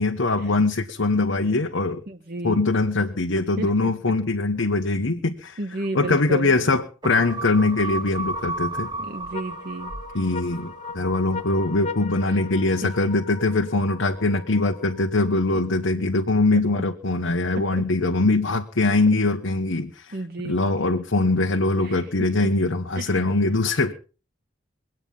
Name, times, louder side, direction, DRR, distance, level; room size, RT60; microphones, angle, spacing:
voice 1, 0.0-2.0 2.4-8.9 10.1-20.2 20.4-23.9, left 2 dB, 75° left, 4 dB, 1.1 m, -22 dB
voice 2, 2.1-2.6 3.6-3.7 5.6-6.5 9.0-9.9 15.5-15.6 16.5-16.6 20.1-20.6 21.8-22.0 22.9-23.2, right 2 dB, 45° right, 5 dB, 1.0 m, -32 dB
sound 1, 7.0-11.7 12.1-12.2, right 2 dB, 20° right, 1.1 m, -33 dB
sound 2, 8.3-15.9, left 3 dB, 35° left, 0.7 m, -39 dB
23.0 x 9.0 x 5.4 m, 0.38 s
head